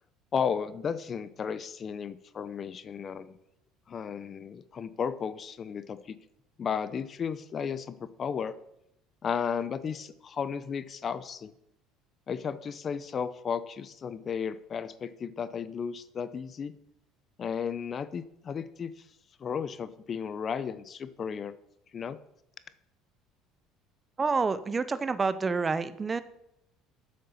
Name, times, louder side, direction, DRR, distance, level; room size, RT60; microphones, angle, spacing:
voice 1, 0.3-3.4 3.9-6.2 6.6-8.5 9.2-11.5 12.3-16.7 17.4-18.9 19.4-21.5 21.9-22.2, left 7 dB, 35° left, 15 dB, 0.6 m, -34 dB
voice 2, 24.2-26.2, right 4 dB, 25° right, 14 dB, 0.5 m, -28 dB
7.9 x 6.6 x 7.0 m, 0.81 s
supercardioid pair, 110°, 0 cm